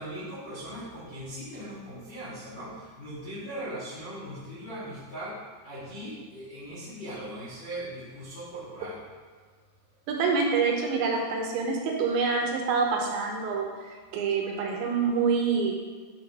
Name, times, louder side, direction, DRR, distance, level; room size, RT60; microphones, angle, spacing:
voice 1, 0.0-5.4 5.6-9.0, right 1 dB, 70° left, -12 dB, 1.0 m, -39 dB
voice 2, 10.1-15.7, right 5 dB, 80° right, 0 dB, 3.0 m, -26 dB
9.7 x 3.8 x 3.5 m, 1.6 s
omnidirectional pair, 5.3 m